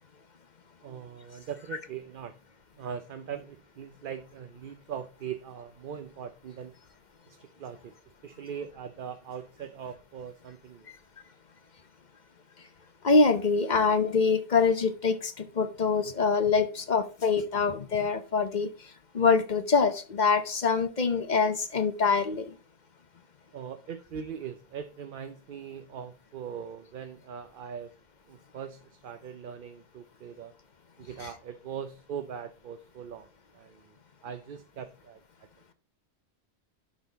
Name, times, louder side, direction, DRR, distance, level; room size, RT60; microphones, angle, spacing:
voice 1, 0.8-2.4 2.7-6.7 7.3-7.9 8.2-10.9 23.5-27.9 28.3-30.5 31.0-33.3 33.5-33.9 34.2-35.2, right 8 dB, 55° right, 0.7 m, -41 dB
voice 2, 13.0-18.7 19.1-22.5 31.2-31.3, left 4 dB, 45° left, 0.8 m, -25 dB
11.0 x 3.9 x 4.0 m
omnidirectional pair, 1.2 m